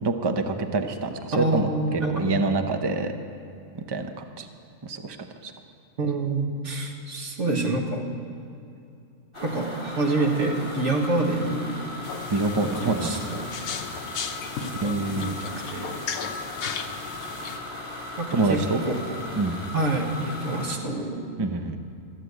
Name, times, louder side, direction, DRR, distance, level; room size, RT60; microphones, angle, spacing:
voice 1, 0.0-3.1 3.7-4.5 4.8-5.2 5.4-5.5 12.3-13.2 14.8-15.4 18.3-18.8 19.4-19.6 21.4-21.8, right 3 dB, 25° right, 6 dB, 0.6 m, -26 dB
voice 2, 1.3-2.2 6.0-8.1 9.4-11.9 12.8-13.5 14.6-16.0 18.2-18.6 19.7-21.2, right 2 dB, 60° right, 1 dB, 1.9 m, -27 dB
sound 1, 9.3-20.7, left 2 dB, 20° left, 1.6 m, -37 dB
sound 2, 12.0-17.6, left 6 dB, 80° left, 1.2 m, -36 dB
13.5 x 7.5 x 9.4 m, 2.7 s
omnidirectional pair, 1.4 m